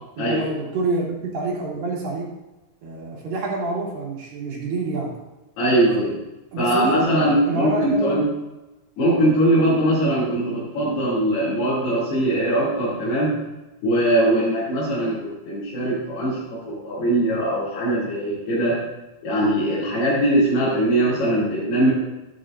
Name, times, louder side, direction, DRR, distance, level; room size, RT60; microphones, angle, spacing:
voice 1, 0.2-2.3 2.8-5.1 6.5-7.1 7.5-8.2, right 3 dB, 65° right, -4 dB, 4.1 m, -27 dB
voice 2, 5.6-6.1 6.6-8.2 9.0-13.4 13.8-18.8 19.2-21.9, right 1 dB, 85° left, -9 dB, 4.7 m, -21 dB
14.5 x 10.5 x 2.5 m, 1.0 s
omnidirectional pair, 4.5 m